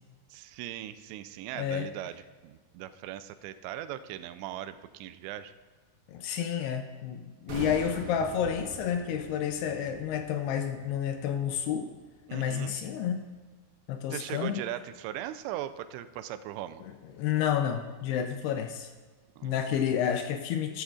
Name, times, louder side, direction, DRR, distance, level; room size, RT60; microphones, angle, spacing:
voice 1, 0.3-5.5 12.3-12.7 14.1-16.8 19.4-19.6, right 12 dB, 85° right, 11 dB, 2.8 m, -39 dB
voice 2, 1.6-1.9 6.1-11.9 12.3-13.3 13.9-14.6 17.2-18.9 19.4-20.8, left 8 dB, 80° left, 6 dB, 2.5 m, -30 dB
sound 1, 7.5-12.5 12.8-12.9, right 3 dB, 60° right, 2.3 m, -44 dB
13.5 x 12.5 x 2.4 m, 1.4 s
omnidirectional pair, 5.0 m